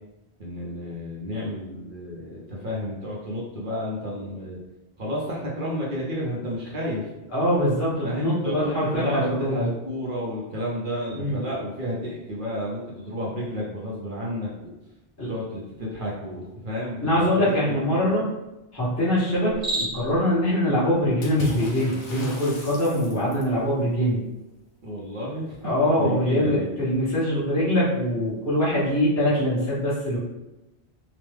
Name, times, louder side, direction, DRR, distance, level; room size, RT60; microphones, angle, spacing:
voice 1, 0.4-4.6 5.0-7.1 8.0-14.7 15.3-18.0 24.8-25.6 26.0-26.7, equal, 55° right, -5 dB, 0.8 m, -31 dB
voice 2, 7.3-9.6 11.1-11.4 15.2-15.3 17.0-18.3 18.7-24.2 25.6-30.2, equal, 15° left, -11 dB, 1.0 m, -23 dB
Cricket, 19.4-20.2, right 1 dB, 80° right, 1.2 m, -29 dB
Water / Splash splatter, 21.2-23.6, left 3 dB, 85° left, 1.0 m, -36 dB
3.0 x 2.1 x 3.2 m, 0.98 s
omnidirectional pair, 1.1 m